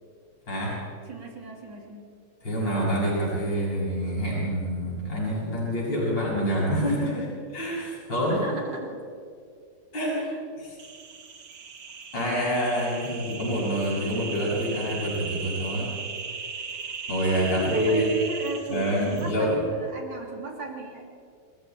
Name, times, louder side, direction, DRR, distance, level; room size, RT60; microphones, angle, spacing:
voice 1, 1.1-2.1 8.3-9.0 10.2-10.4 12.8-13.0 17.4-21.1, right 3 dB, 85° right, 1 dB, 3.7 m, -37 dB
voice 2, 2.4-8.4 9.9-10.2 10.6-10.8 12.1-15.9 17.1-18.1 18.7-19.6, equal, 85° left, -6 dB, 7.3 m, -27 dB
sound 1, 10.8-19.3, right 5 dB, 65° right, 2.1 m, -38 dB
27.0 x 21.0 x 4.5 m, 2.3 s
omnidirectional pair, 1.9 m